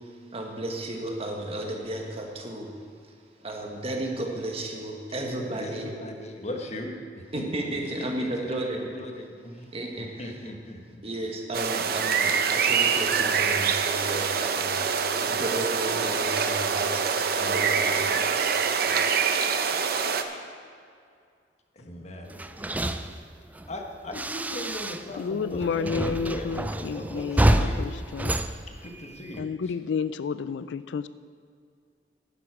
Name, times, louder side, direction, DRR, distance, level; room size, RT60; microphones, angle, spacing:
voice 1, 0.0-2.7 3.4-5.9 7.3-8.9 9.7-10.3 11.0-14.8 15.2-18.5 18.8-19.0, right 1 dB, 35° right, 1 dB, 1.5 m, -33 dB
voice 2, 5.1-9.7 10.2-11.0 21.7-23.0 23.7-27.9 28.7-29.5, left 1 dB, 40° left, 3 dB, 1.3 m, -39 dB
sound 1, 11.5-20.2, right 6 dB, 60° right, 0.7 m, -25 dB
sound 2, 22.3-25.3 25.5-29.4, right 1 dB, 10° right, 0.4 m, -28 dB
voice 3, 25.2-28.4 29.4-31.1, left 6 dB, 85° left, 15 dB, 0.4 m, -31 dB
11.0 x 11.0 x 4.9 m, 2.2 s
head